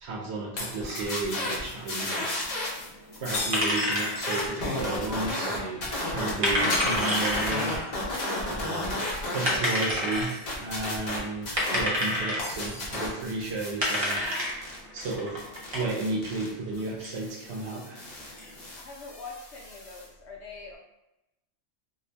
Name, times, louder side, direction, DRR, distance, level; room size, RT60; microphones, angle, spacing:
voice 1, 0.0-2.3 3.2-7.8 8.5-9.0 9.3-10.3 10.6-14.2 14.9-15.4 15.7-18.1, right 3 dB, 65° right, -1 dB, 0.9 m, -33 dB
sound 1, 0.6-1.6 3.3-4.9 6.7-7.9 8.2-8.3 9.6-10.7 12.4-13.3, left 2 dB, 90° left, 1.1 m, -37 dB
sound 2, 0.8-2.9 3.1-9.6 9.9-12.2 12.5-20.0, left 1 dB, 40° left, 0.9 m, -33 dB
sound 3, 0.8-18.7, left 1 dB, 35° right, 0.6 m, -31 dB
voice 2, 18.8-20.8, left 4 dB, 70° left, -2 dB, 0.9 m, -43 dB
2.7 x 2.4 x 3.3 m, 0.94 s
omnidirectional pair, 1.3 m